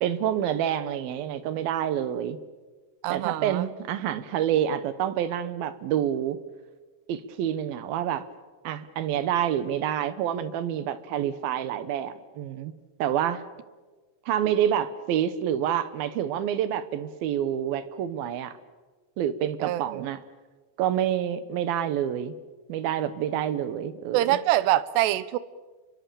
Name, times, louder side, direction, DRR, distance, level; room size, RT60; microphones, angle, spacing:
voice 1, 0.0-2.4 3.1-6.4 7.1-8.3 8.6-12.7 13.0-13.4 14.3-18.5 19.2-20.2 20.8-22.4 22.7-24.2, right 10 dB, 70° right, 13 dB, 2.7 m, -27 dB
voice 2, 3.0-3.7 19.6-20.1 24.1-25.4, right 14 dB, 85° right, 16 dB, 3.0 m, -25 dB
29.5 x 23.0 x 7.0 m, 1.3 s
omnidirectional pair, 4.7 m